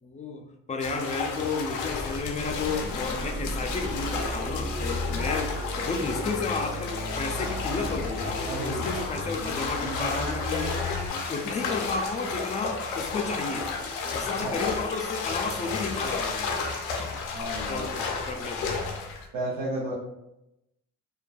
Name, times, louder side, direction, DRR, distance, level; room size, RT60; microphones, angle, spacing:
voice 1, 0.0-10.7 11.1-13.7 14.1-16.5 16.9-17.2 17.7-18.7, left 4 dB, 25° left, 3 dB, 0.3 m, -32 dB
sound 1, 0.8-19.3, left 4 dB, 90° left, 0.5 m, -32 dB
sound 2, 1.8-11.1, left 1 dB, 35° right, 0.7 m, -34 dB
voice 2, 8.5-8.8 14.4-14.6 17.3-17.9 19.3-19.9, right 1 dB, 85° right, -4 dB, 0.6 m, -32 dB
2.5 x 2.1 x 2.3 m, 0.87 s
cardioid pair, 90°, 30 cm